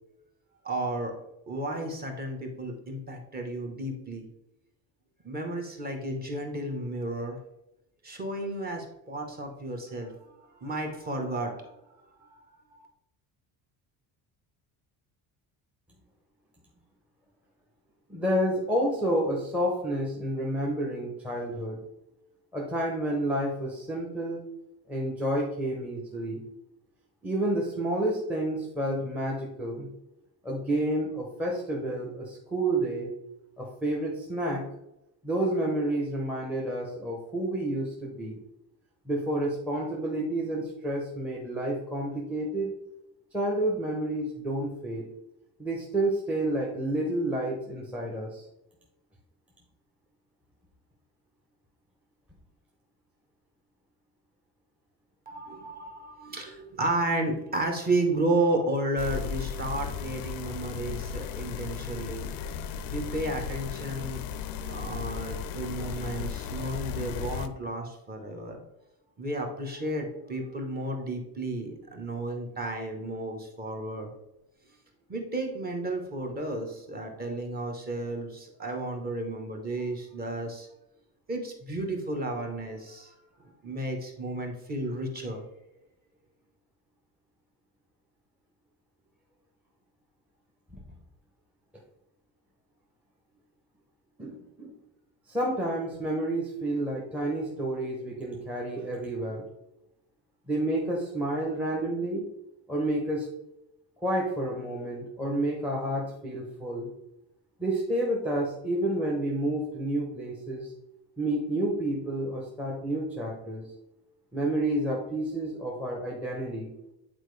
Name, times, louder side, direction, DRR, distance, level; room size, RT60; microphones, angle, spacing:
voice 1, 0.6-1.1 1.5-4.3 5.2-7.4 8.0-11.5 11.9-12.0 55.3-62.3 62.9-64.2 64.6-68.6 69.2-74.1 75.1-80.7 81.3-83.1 83.4-85.4, right 2 dB, 25° right, 2 dB, 1.1 m, -32 dB
voice 2, 18.1-21.8 22.5-24.4 24.9-26.4 27.2-29.9 30.4-33.1 33.6-34.6 35.2-38.4 39.1-42.7 43.3-45.1 45.6-48.4 90.7-90.8 94.2-94.7 95.3-99.4 100.5-102.2 102.7-103.3 104.0-106.9 107.6-110.7 111.2-113.7 114.3-116.7, right 1 dB, 5° right, -3 dB, 0.8 m, -30 dB
sound 1, 59.0-67.5, left 7 dB, 60° left, 0.6 m, -35 dB
8.9 x 4.3 x 3.2 m, 0.87 s
cardioid pair, 165°, 40 cm